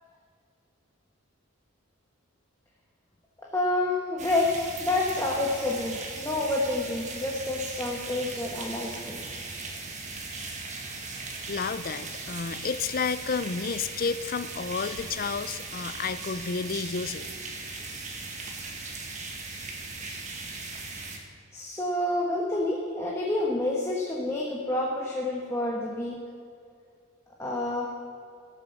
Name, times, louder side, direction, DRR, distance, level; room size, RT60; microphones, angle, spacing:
voice 1, 3.5-4.5 4.8-9.2 21.5-26.2 27.4-27.9, left 2 dB, 10° left, -3 dB, 1.2 m, -28 dB
sound 1, 4.2-21.2, right 3 dB, 35° right, 1.6 m, -38 dB
voice 2, 11.5-17.2, left 5 dB, 40° left, 14 dB, 0.4 m, -31 dB
16.0 x 7.3 x 6.9 m, 2.5 s
head